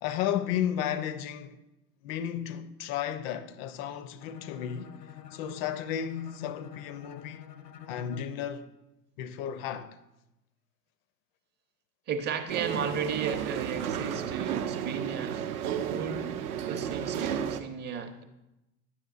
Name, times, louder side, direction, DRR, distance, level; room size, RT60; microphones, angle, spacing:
voice 1, 0.0-1.6 2.0-4.9 5.3-7.4 7.9-8.7 9.2-10.0, left 10 dB, 40° left, 0.4 m, -33 dB
Bowed string instrument, 4.2-8.4, left 9 dB, 80° left, 0.7 m, -47 dB
voice 2, 12.1-16.4 16.7-18.2, right 6 dB, 20° right, 0.6 m, -34 dB
sound 1, 12.5-17.6, right 9 dB, 65° right, 0.6 m, -33 dB
9.8 x 7.0 x 2.4 m
figure-of-eight pair, 85°, 49 cm